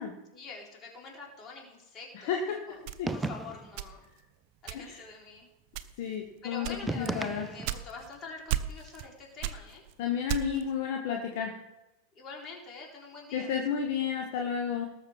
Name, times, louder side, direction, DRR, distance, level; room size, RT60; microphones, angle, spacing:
voice 1, 0.3-2.3 2.6-2.8 3.1-4.0 4.6-5.5 6.0-6.1 6.4-9.8 12.1-13.5, left 4 dB, 25° left, -1 dB, 4.0 m, -45 dB
voice 2, 2.1-2.6 3.0-3.1 4.7-5.0 6.0-6.7 7.0-7.5 10.0-11.5 13.3-14.9, left 7 dB, 50° left, 3 dB, 1.5 m, -31 dB
sound 1, 2.9-4.2 4.7-5.1 5.7-6.2 6.6-8.2 8.5-9.1 9.4-10.7, right 12 dB, 45° right, 0.7 m, -35 dB
sound 2, 3.1-3.8 6.9-7.9, right 2 dB, 10° right, 0.5 m, -35 dB
19.0 x 6.6 x 4.6 m, 0.97 s
figure-of-eight pair, 90°, 0 cm